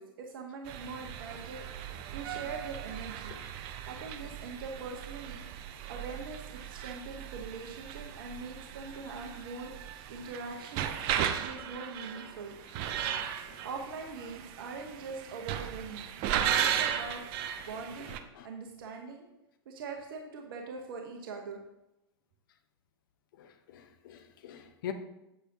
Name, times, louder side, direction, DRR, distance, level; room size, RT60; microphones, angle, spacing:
voice 1, 0.0-1.6 2.1-3.4 3.9-5.4 5.9-9.7 10.1-10.9 11.2-12.6 13.6-17.2 17.6-18.1 18.4-19.2 19.6-21.6, right 4 dB, 60° right, 2 dB, 1.2 m, -42 dB
sound 1, 0.7-18.2, right 9 dB, 40° right, 0.7 m, -36 dB
voice 2, 23.4-24.9, left 10 dB, 55° left, 7 dB, 1.0 m, -43 dB
8.1 x 8.1 x 2.9 m, 0.90 s
figure-of-eight pair, 95°, 13 cm